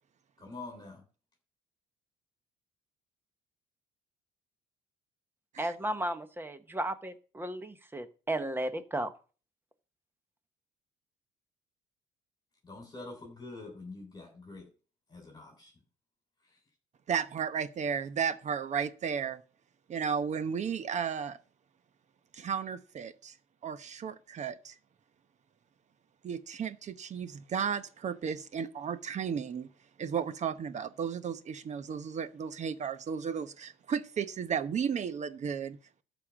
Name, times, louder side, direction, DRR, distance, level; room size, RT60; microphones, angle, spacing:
voice 1, 0.4-1.0 12.6-14.7 15.1-15.7 16.4-16.6, left 3 dB, 25° left, 3.4 m, -46 dB
voice 2, 5.6-9.1, right 1 dB, 10° right, 1.2 m, -34 dB
voice 3, 17.1-19.4 19.9-21.4 22.3-23.4 23.6-24.7 26.2-29.7 30.0-36.0, right 7 dB, 45° right, 1.0 m, -34 dB
12.5 x 5.2 x 7.3 m
cardioid pair, 110°, 17 cm